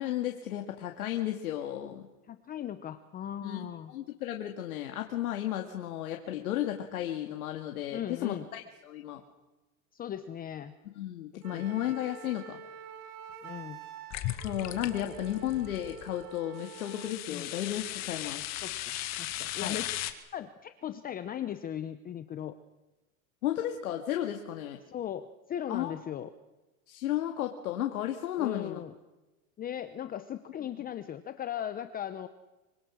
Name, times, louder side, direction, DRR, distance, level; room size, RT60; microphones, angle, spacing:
voice 1, 0.0-2.1 3.4-9.2 11.0-12.6 14.4-18.4 19.6-19.8 23.4-24.8 25.7-26.0 26.9-28.8, left 12 dB, 85° left, 4 dB, 2.2 m, -34 dB
voice 2, 2.3-3.9 7.9-8.5 9.9-10.7 11.3-11.6 13.4-13.8 14.9-15.2 17.3-17.5 18.6-22.5 24.9-26.3 28.4-28.9 29.6-32.3, left 10 dB, 20° left, 11 dB, 0.8 m, -38 dB
Wind instrument woodwind instrument, 11.4-17.2, right 6 dB, 85° right, 2.6 m, -47 dB
sound 1, 14.1-16.1 16.6-20.1, left 14 dB, 40° left, 2.0 m, -37 dB
24.5 x 24.5 x 6.4 m, 1.1 s
supercardioid pair, 135°, 43 cm